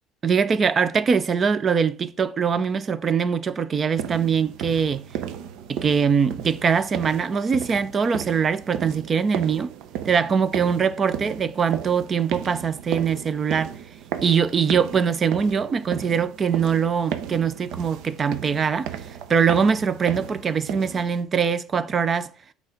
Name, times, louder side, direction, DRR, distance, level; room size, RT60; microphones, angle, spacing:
voice 1, 0.2-5.0 5.7-9.7 10.1-13.7 14.2-18.9 19.3-22.3, right 6 dB, 25° right, 0.5 m, -22 dB
sound 1, 4.0-21.2, right 9 dB, 60° right, 0.7 m, -35 dB
8.3 x 3.5 x 5.1 m
cardioid pair, 155°, 0 cm